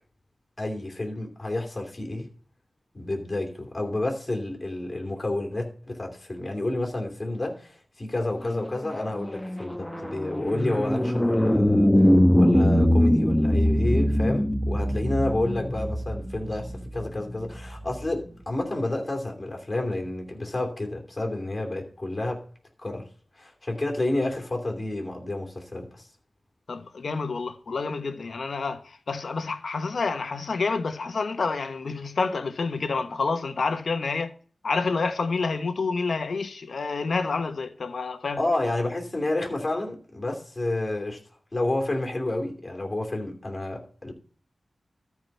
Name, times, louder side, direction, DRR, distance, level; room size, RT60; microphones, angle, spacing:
voice 1, 0.6-2.3 2.9-12.1 12.4-22.4 22.8-23.1 23.4-26.1 38.4-41.2 41.5-44.1, left 2 dB, 30° left, 2.8 m, -30 dB
sound 1, 8.5-18.1, equal, 5° left, 0.9 m, -23 dB
voice 2, 26.7-34.3 34.6-38.4, left 4 dB, 75° left, 1.0 m, -28 dB
13.5 x 4.8 x 5.5 m
wide cardioid pair, 95°, 0 cm